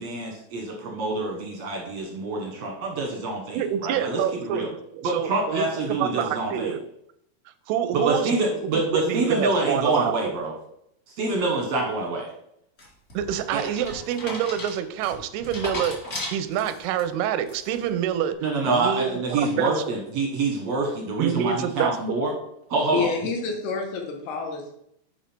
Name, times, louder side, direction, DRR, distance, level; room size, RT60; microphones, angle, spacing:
voice 1, 0.0-4.7 5.0-6.7 7.9-10.5 11.1-12.3 13.5-13.6 18.4-22.3 22.7-23.1, right 3 dB, 65° right, -1 dB, 1.6 m, -26 dB
voice 2, 3.5-6.8 7.7-8.4 8.7-10.1 13.1-18.4 18.7-19.9 21.2-22.2, right 9 dB, 90° right, 11 dB, 2.7 m, -27 dB
sound 1, 12.8-17.0 17.5-17.9, left 1 dB, 30° left, 1.6 m, -36 dB
voice 3, 22.9-24.7, left 5 dB, 80° left, 3 dB, 3.2 m, -28 dB
7.2 x 5.5 x 4.4 m, 0.75 s
omnidirectional pair, 4.5 m